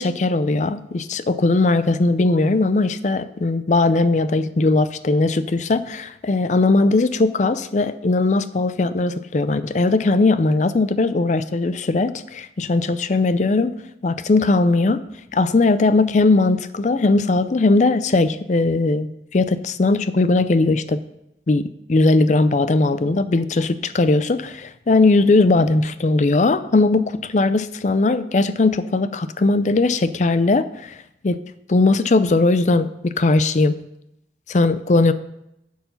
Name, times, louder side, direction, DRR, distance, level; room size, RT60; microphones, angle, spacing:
voice 1, 0.0-13.7 14.0-15.0 15.3-21.0 21.5-31.0 31.2-31.4 31.7-33.8 34.5-35.1, left 3 dB, 40° left, 13 dB, 0.4 m, -19 dB
10.0 x 4.8 x 5.6 m, 0.81 s
head